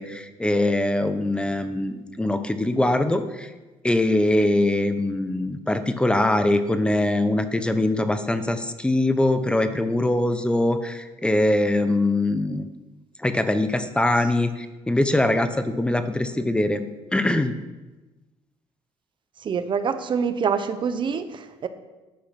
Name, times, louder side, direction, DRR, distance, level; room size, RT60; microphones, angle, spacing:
voice 1, 0.0-3.5 3.8-12.7 13.2-16.8 17.1-17.5, left 1 dB, 10° left, 9 dB, 1.0 m, -22 dB
voice 2, 19.4-21.7, right 6 dB, 45° right, 10 dB, 1.1 m, -25 dB
13.5 x 10.5 x 6.0 m, 1.2 s
cardioid pair, 105°, 12 cm